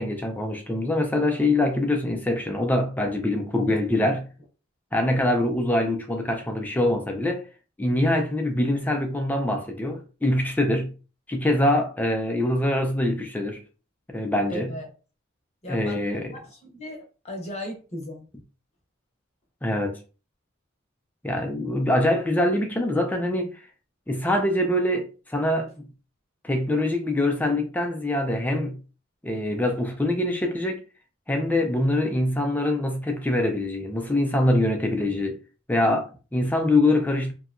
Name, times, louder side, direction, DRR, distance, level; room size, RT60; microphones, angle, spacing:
voice 1, 0.0-4.3 4.9-7.5 7.8-10.9 11.3-13.6 14.1-14.7 15.7-16.3 19.6-20.0 21.2-23.6 24.1-25.9 26.4-28.8 29.2-30.8 31.3-35.4 35.7-37.3, left 1 dB, 10° left, 0.3 m, -24 dB
voice 2, 14.5-14.9 15.6-18.3, equal, 30° left, 0.7 m, -36 dB
2.7 x 2.1 x 2.4 m
head